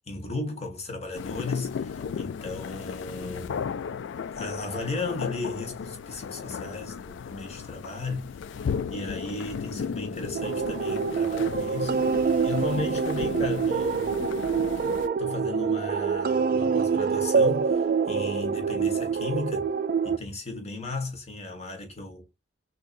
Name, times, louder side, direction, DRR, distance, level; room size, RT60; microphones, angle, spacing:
voice 1, 0.1-3.7 4.3-8.3 8.9-12.0 12.4-14.2 15.2-19.7 20.0-22.2, left 3 dB, 35° left, 1.5 m, -35 dB
sound 1, 1.1-15.1, left 6 dB, 65° left, 0.3 m, -35 dB
sound 2, 10.3-20.2, right 5 dB, 45° right, 0.3 m, -26 dB
6.1 x 2.8 x 2.5 m
head